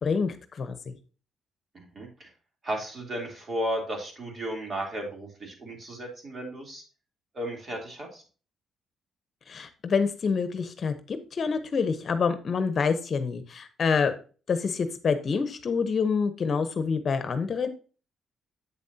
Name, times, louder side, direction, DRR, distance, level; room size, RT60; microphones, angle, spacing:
voice 1, 0.0-0.9 9.5-14.1 14.5-17.7, left 5 dB, 50° left, 10 dB, 1.0 m, -27 dB
voice 2, 1.7-2.3 2.6-6.8 7.3-8.2, right 1 dB, 40° right, 1 dB, 3.2 m, -34 dB
8.5 x 7.0 x 2.8 m, 0.36 s
cardioid pair, 90°, 0 cm